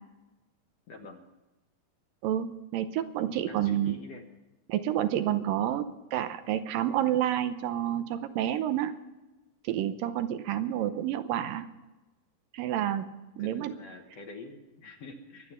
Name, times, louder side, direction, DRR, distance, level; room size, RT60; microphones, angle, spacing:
voice 1, 0.9-1.2 3.3-4.2 13.4-15.5, left 3 dB, 55° left, 3 dB, 2.0 m, -46 dB
voice 2, 2.2-4.0 4.7-9.0 9.6-11.7 12.5-13.1 13.4-13.8, right 11 dB, 80° right, 10 dB, 2.5 m, -29 dB
23.5 x 8.8 x 5.7 m, 1.1 s
omnidirectional pair, 4.1 m